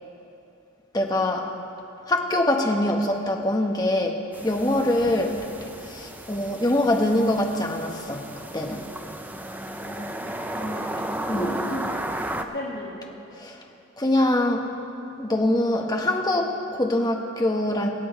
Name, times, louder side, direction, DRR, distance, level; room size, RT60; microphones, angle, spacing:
voice 1, 0.9-1.4 2.1-4.1 4.4-5.4 5.9-8.2 8.5-8.8 11.3-11.4 13.4-13.6 14.0-14.7 15.2-17.9, left 1 dB, 20° left, 2 dB, 1.0 m, -23 dB
sound 1, 4.3-12.4, right 1 dB, 10° right, 0.4 m, -34 dB
voice 2, 9.6-11.1 11.3-11.9 12.3-13.1, equal, 50° left, -4 dB, 2.0 m, -35 dB
23.5 x 8.7 x 4.6 m, 2.9 s
head